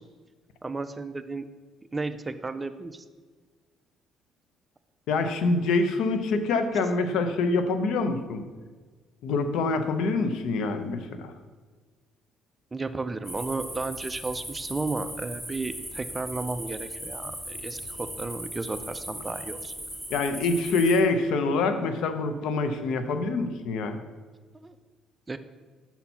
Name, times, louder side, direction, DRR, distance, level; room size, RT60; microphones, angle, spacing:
voice 1, 0.6-1.5 1.9-3.0 12.7-19.7 24.6-24.7 25.3-25.4, right 3 dB, 15° right, 11 dB, 0.3 m, -33 dB
voice 2, 5.1-8.4 9.2-11.3 20.1-24.0, left 3 dB, 75° left, 8 dB, 0.6 m, -25 dB
sound 1, 13.2-21.0, right 1 dB, 5° left, 1.4 m, -38 dB
5.7 x 4.3 x 5.6 m, 1.4 s
cardioid pair, 130°, 0 cm